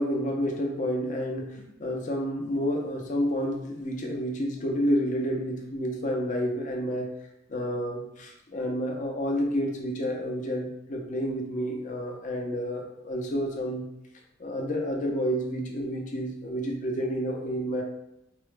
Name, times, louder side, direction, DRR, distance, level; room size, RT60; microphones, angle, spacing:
voice 1, 0.0-7.1 7.5-13.9 14.4-17.8, equal, 40° left, 1 dB, 0.6 m, -29 dB
4.5 x 2.1 x 3.2 m, 0.83 s
head